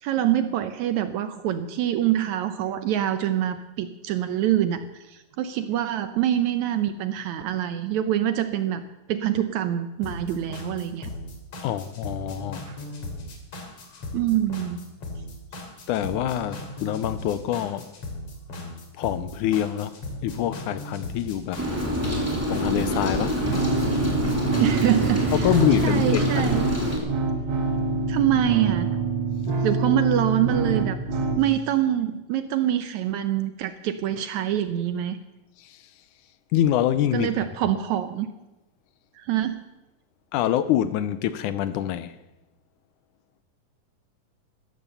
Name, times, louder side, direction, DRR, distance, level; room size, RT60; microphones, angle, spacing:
voice 1, 0.0-8.8 9.1-11.1 12.7-12.8 14.1-14.9 24.6-25.5 25.8-26.7 28.1-28.9 29.6-31.0 31.4-35.2 37.1-38.3 39.2-39.6, right 11 dB, 75° right, 1.8 m, -25 dB
sound 1, 10.0-26.0, left 2 dB, 45° left, 3.5 m, -37 dB
voice 2, 11.6-12.6 15.9-17.9 19.0-21.7 22.5-23.4 25.3-26.5 35.6-35.8 36.5-37.3 40.3-42.2, left 11 dB, 75° left, 1.9 m, -25 dB
Rain, 21.6-27.0, equal, 5° right, 2.9 m, -26 dB
sound 2, 23.4-31.4, right 3 dB, 40° right, 2.0 m, -26 dB
15.0 x 14.0 x 6.9 m
omnidirectional pair, 3.9 m